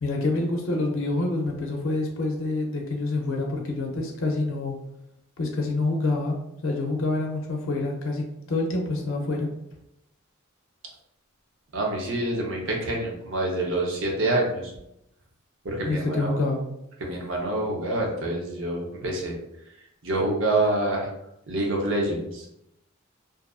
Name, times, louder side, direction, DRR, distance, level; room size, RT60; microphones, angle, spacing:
voice 1, 0.0-4.7 5.4-6.4 6.6-9.5 15.8-16.6, left 2 dB, 65° left, 1 dB, 0.5 m, -27 dB
voice 2, 11.7-14.7 15.6-16.4 17.0-19.3 20.0-21.1 21.5-22.5, right 1 dB, 65° right, -1 dB, 0.7 m, -26 dB
2.5 x 2.4 x 2.3 m, 0.83 s
head